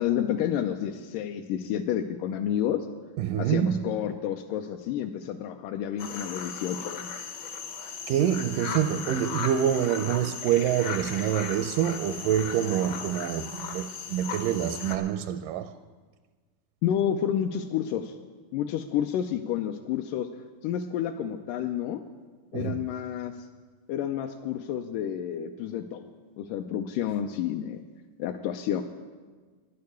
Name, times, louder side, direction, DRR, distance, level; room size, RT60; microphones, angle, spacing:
voice 1, 0.0-2.9 3.4-7.1 16.8-18.2 18.5-20.3 20.6-22.0 22.5-23.5 23.9-26.1 26.4-27.8 28.2-28.8, left 10 dB, 85° left, 2.2 m, -30 dB
voice 2, 3.2-3.8 8.1-15.7 22.5-22.8, right 10 dB, 85° right, 2.1 m, -26 dB
sound 1, 6.0-15.0, left 6 dB, 65° left, 1.1 m, -37 dB
11.5 x 8.6 x 9.4 m
omnidirectional pair, 3.8 m